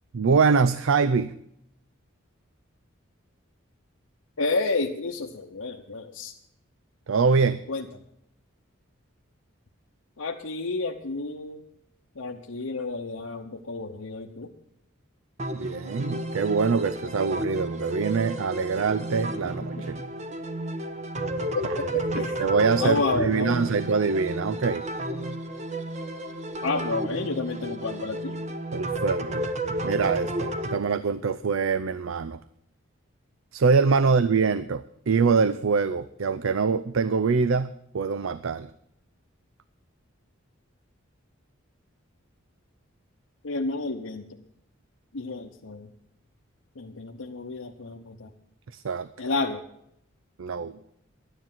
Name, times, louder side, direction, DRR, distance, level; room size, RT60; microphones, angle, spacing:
voice 1, 0.1-1.4 7.1-7.7 15.5-20.0 21.8-24.9 28.7-29.4 29.8-32.4 33.5-38.7 48.7-49.1 50.4-50.8, right 5 dB, 75° right, 14 dB, 0.5 m, -24 dB
voice 2, 4.4-6.3 7.7-7.8 10.2-11.6 12.2-14.5 19.8-19.9 21.5-21.9 22.2-22.4 22.8-23.8 26.6-28.3 43.4-44.2 45.1-45.9 46.8-48.3 49.2-49.6, left 3 dB, 80° left, 0 dB, 0.9 m, -30 dB
sound 1, 15.4-30.8, right 1 dB, 35° right, 1.1 m, -32 dB
12.5 x 10.0 x 7.3 m, 0.74 s
head